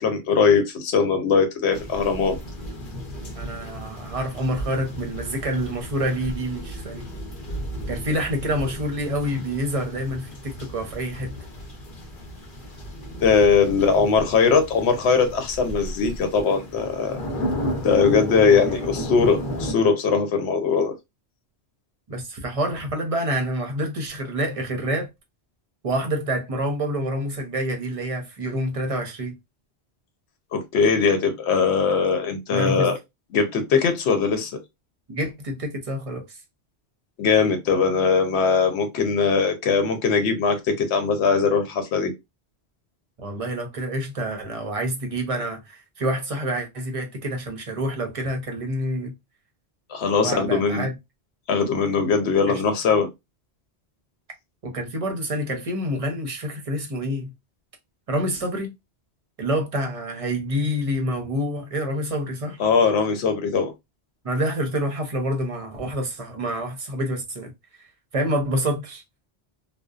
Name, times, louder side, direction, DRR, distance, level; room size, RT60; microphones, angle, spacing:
voice 1, 0.0-2.4 13.2-17.1 17.8-20.9 30.5-33.0 33.3-34.6 37.2-42.1 49.9-50.9 51.5-53.1 62.6-63.7, left 5 dB, 80° left, 0.9 m, -20 dB
sound 1, 1.7-19.7, equal, 55° left, 0.9 m, -34 dB
voice 2, 3.4-7.1 7.9-11.3 14.0-14.1 18.6-18.9 22.1-25.1 25.8-29.3 32.5-32.9 35.1-36.4 43.2-49.1 50.2-51.0 52.5-52.6 54.6-57.3 58.1-58.7 59.4-62.6 64.2-67.8 68.1-69.0, equal, 45° right, 0.5 m, -27 dB
2.6 x 2.1 x 2.3 m
omnidirectional pair, 1.1 m